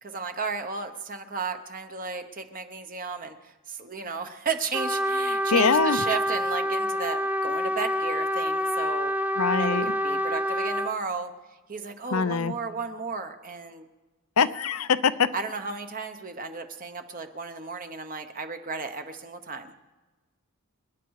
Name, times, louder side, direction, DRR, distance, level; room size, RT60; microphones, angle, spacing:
voice 1, 0.0-9.1 9.5-11.3 11.7-13.8 15.3-19.7, right 4 dB, 40° right, 7 dB, 0.9 m, -34 dB
Trumpet, 4.7-10.9, equal, 5° right, 0.4 m, -27 dB
voice 2, 5.5-6.0 9.4-9.9 12.1-12.5 14.4-15.3, left 5 dB, 80° left, 14 dB, 0.7 m, -23 dB
27.5 x 10.5 x 4.8 m, 1.2 s
head